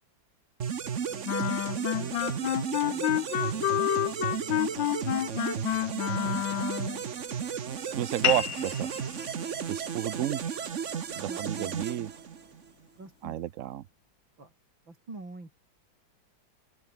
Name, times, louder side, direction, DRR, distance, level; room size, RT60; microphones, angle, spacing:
sound 1, 0.6-12.7, right 7 dB, 45° right, 1.3 m, -34 dB
voice 1, 1.1-4.7 5.4-6.6 11.2-11.8 12.9-13.5 14.4-14.5 14.9-15.7, right 2 dB, 90° right, 7.4 m, -49 dB
Wind instrument woodwind instrument, 1.2-7.0, left 13 dB, 80° left, 1.5 m, -29 dB
voice 2, 8.0-8.9 9.7-10.5 11.1-12.1 13.2-13.8, right 13 dB, 65° right, 0.8 m, -31 dB
sound 2, 8.2-13.3, left 10 dB, 60° left, 1.4 m, -36 dB
open air
omnidirectional pair, 2.1 m